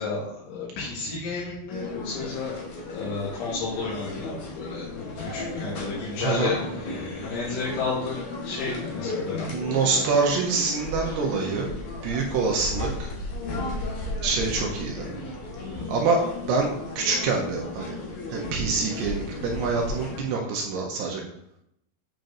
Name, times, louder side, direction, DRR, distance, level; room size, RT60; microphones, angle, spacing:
voice 1, 0.0-2.6 2.9-6.9 7.2-9.5 11.0-11.1 15.2-15.3, left 4 dB, 85° left, -7 dB, 3.9 m, -32 dB
sound 1, 1.7-20.2, left 2 dB, 70° left, 1.7 m, -34 dB
voice 2, 6.2-6.5 9.5-11.7 12.0-13.1 14.2-15.2 15.7-16.2 16.5-16.7 17.0-18.0 18.3-21.2, right 4 dB, 75° right, 0 dB, 2.7 m, -26 dB
9.0 x 5.2 x 2.6 m, 0.76 s
omnidirectional pair, 5.3 m